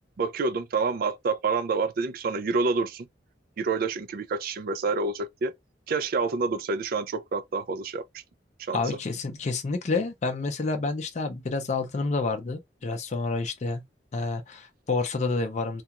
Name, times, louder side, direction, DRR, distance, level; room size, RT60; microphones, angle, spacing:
voice 1, 0.2-3.1 3.6-5.5 5.9-8.2 8.6-8.8, right 4 dB, 55° right, 0.4 m, -28 dB
voice 2, 8.7-13.8 14.1-15.8, left 3 dB, 40° left, 0.4 m, -29 dB
2.3 x 2.2 x 2.8 m
head